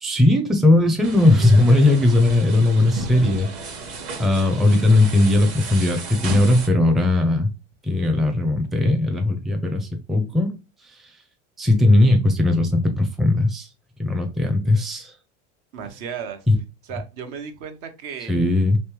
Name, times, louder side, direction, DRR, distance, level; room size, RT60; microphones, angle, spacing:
voice 1, 0.0-3.5 4.2-7.5 7.8-10.5 11.6-13.7 14.0-15.1 16.5-16.6 18.3-18.8, left 2 dB, ahead, 0.5 m, -18 dB
sound 1, 1.0-6.7, right 4 dB, 40° right, 1.1 m, -33 dB
voice 2, 15.7-16.4 16.8-18.3, right 7 dB, 60° right, 0.9 m, -34 dB
3.2 x 3.1 x 3.1 m
hypercardioid pair, 90°, 36 cm